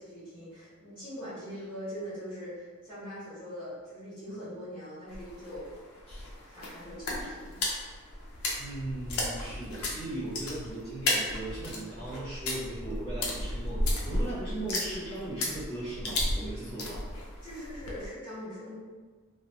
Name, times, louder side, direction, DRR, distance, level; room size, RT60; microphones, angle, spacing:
voice 1, 0.0-5.7 6.4-7.6 17.4-18.8, equal, 10° left, -14 dB, 1.4 m, -42 dB
sound 1, 5.1-18.1, left 1 dB, 70° left, 0.6 m, -34 dB
voice 2, 8.6-17.0, right 2 dB, 30° left, -15 dB, 1.2 m, -38 dB
2.9 x 2.2 x 2.8 m, 1.4 s
head